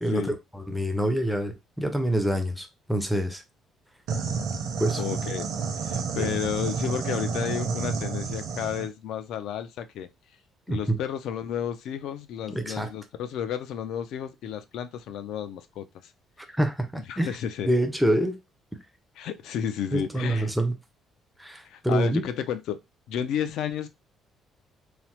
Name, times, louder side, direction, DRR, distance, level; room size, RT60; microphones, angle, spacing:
voice 1, 0.0-3.4 4.8-5.0 6.2-6.3 10.7-11.0 12.5-12.9 16.6-17.3 17.6-18.4 19.9-20.7 21.4-22.2, right 1 dB, ahead, 0.4 m, -26 dB
sound 1, 4.1-8.9, right 5 dB, 65° right, 0.6 m, -30 dB
voice 2, 5.0-5.5 5.8-10.1 10.7-16.1 17.1-17.7 19.2-20.5 21.6-22.8 23.1-23.9, left 9 dB, 70° left, 0.4 m, -32 dB
3.2 x 2.0 x 2.8 m
cardioid pair, 165°, 0 cm